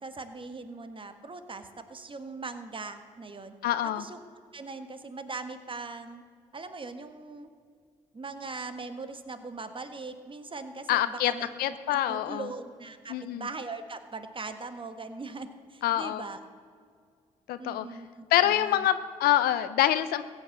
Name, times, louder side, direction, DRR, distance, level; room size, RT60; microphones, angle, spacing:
voice 1, 0.0-3.5 3.8-4.2 4.5-6.2 6.5-7.5 8.1-11.5 11.9-16.4 17.6-18.8, right 3 dB, 35° right, 9 dB, 1.5 m, -40 dB
voice 2, 3.6-4.0 10.9-11.3 11.6-12.5 13.1-13.5 15.8-16.2 17.5-17.9 18.3-20.2, left 12 dB, 80° left, 12 dB, 0.6 m, -25 dB
15.5 x 8.6 x 7.9 m, 2.1 s
supercardioid pair, 50°, 16 cm